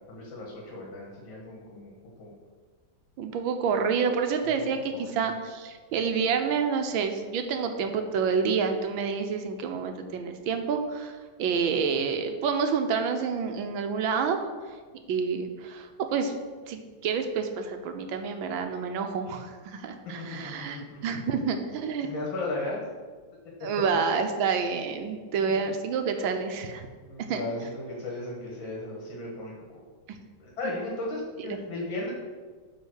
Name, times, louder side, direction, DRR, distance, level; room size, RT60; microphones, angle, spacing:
voice 1, 0.1-2.3 4.6-5.3 20.2-20.4 20.7-21.0 22.0-22.8 25.4-25.6 27.0-29.8 30.4-32.1, left 2 dB, 75° left, -2 dB, 2.2 m, -36 dB
voice 2, 3.2-14.4 15.1-16.3 16.7-22.1 23.6-26.9 27.3-27.5 31.5-31.6, right 5 dB, 90° right, 6 dB, 1.6 m, -28 dB
10.5 x 3.7 x 6.2 m, 1.5 s
omnidirectional pair, 2.1 m